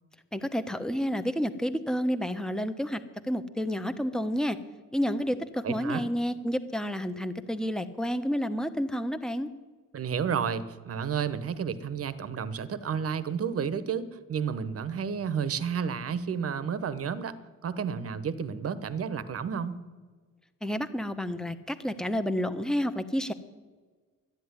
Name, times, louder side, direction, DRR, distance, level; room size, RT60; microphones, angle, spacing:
voice 1, 0.3-4.6 4.9-9.5 20.6-23.3, equal, ahead, 9 dB, 1.1 m, -30 dB
voice 2, 5.6-6.1 9.9-17.4 17.6-19.8, right 7 dB, 45° right, 14 dB, 1.1 m, -31 dB
12.5 x 10.5 x 9.7 m, 1.5 s
cardioid pair, 95°, 33 cm